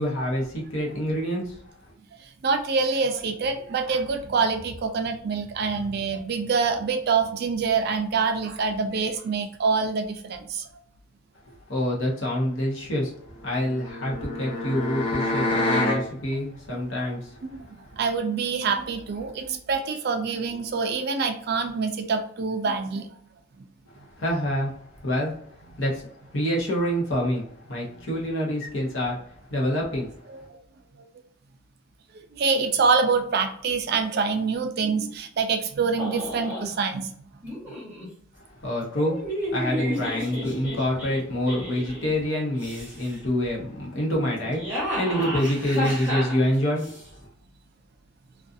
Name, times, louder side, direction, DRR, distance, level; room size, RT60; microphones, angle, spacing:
voice 1, 0.0-1.5 11.7-13.1 13.4-17.4 17.8-17.9 23.9-25.3 25.8-29.2 29.5-30.1 38.6-39.2 39.5-47.0, equal, 65° left, -2 dB, 0.8 m, -27 dB
voice 2, 2.4-10.7 17.6-23.1 27.9-28.0 30.5-30.6 32.3-37.1, right 5 dB, 50° right, 7 dB, 0.3 m, -25 dB
sound 1, 13.4-16.0, left 2 dB, 25° left, 0.6 m, -27 dB
sound 2, 36.0-36.7 37.4-38.1 38.9-42.1 42.5-43.2 44.3-47.0, equal, 10° right, 0.9 m, -32 dB
2.5 x 2.3 x 2.5 m, 0.62 s
head